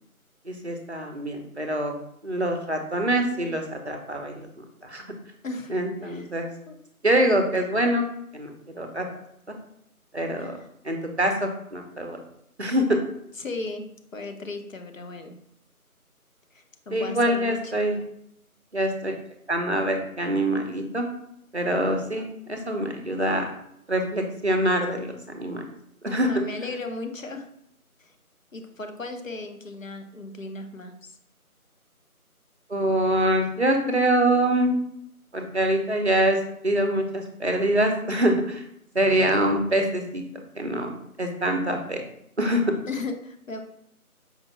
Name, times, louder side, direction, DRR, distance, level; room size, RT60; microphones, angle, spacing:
voice 1, 0.5-1.9 2.2-5.0 5.7-6.5 7.0-8.0 8.3-9.1 9.5-9.6 10.1-10.5 10.8-12.2 12.6-12.8 16.9-18.0 18.7-19.1 19.5-21.0 21.5-23.4 23.9-25.7 26.0-26.3 32.7-34.8 35.3-38.6 38.9-40.2 40.6-42.0 42.4-42.6, right 1 dB, 50° right, 4 dB, 0.5 m, -25 dB
voice 2, 5.4-5.8 6.0-6.3 6.7-6.8 10.4-10.7 13.3-15.4 16.5-17.8 26.2-27.5 28.0-28.2 28.5-31.1 42.9-43.6, left 3 dB, 60° left, 6 dB, 0.6 m, -36 dB
5.0 x 2.1 x 3.0 m, 0.73 s
figure-of-eight pair, 175°, 44 cm